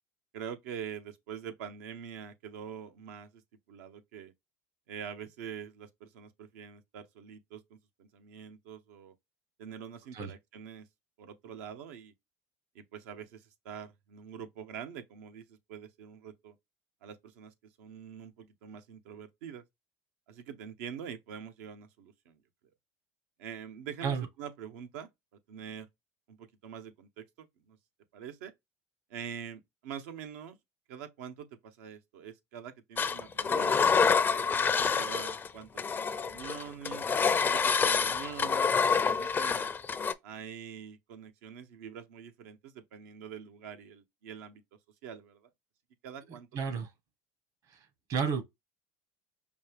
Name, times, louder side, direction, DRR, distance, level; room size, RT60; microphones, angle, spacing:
voice 1, 0.3-3.4 3.7-4.3 4.9-9.1 9.6-10.9 11.2-12.1 12.7-16.6 17.0-19.6 20.3-22.4 23.4-25.1 25.5-25.9 26.3-27.8 28.1-28.5 29.1-30.6 30.9-33.9 34.3-35.7 36.1-37.1 37.5-39.7 40.2-44.6 45.0-45.5 46.0-46.5, right 8 dB, 80° right, 0.7 m, -45 dB
Engine, 33.0-35.5 35.8-40.1, left 5 dB, 25° left, 0.4 m, -27 dB
voice 2, 46.5-46.9 48.1-48.4, right 6 dB, 55° right, 1.1 m, -31 dB
5.2 x 2.3 x 3.3 m
supercardioid pair, 95°, 8 cm